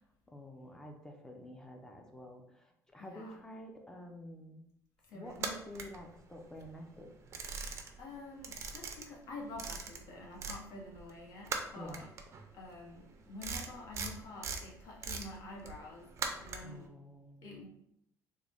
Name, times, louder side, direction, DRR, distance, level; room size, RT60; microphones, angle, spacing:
voice 1, 0.3-4.6 5.1-7.1 11.7-12.1 16.6-17.6, equal, 10° left, 3 dB, 0.5 m, -49 dB
voice 2, 3.0-3.4 5.0-5.6 7.7-12.1 12.5-16.1 16.4-16.9 17.4-17.7, left 2 dB, 65° left, -2 dB, 1.1 m, -48 dB
sound 1, 5.3-6.6 7.0-8.1 8.4-10.6 10.9-16.8, right 5 dB, 45° right, 0.5 m, -41 dB
3.7 x 2.1 x 3.4 m, 0.75 s
cardioid pair, 125°, 7 cm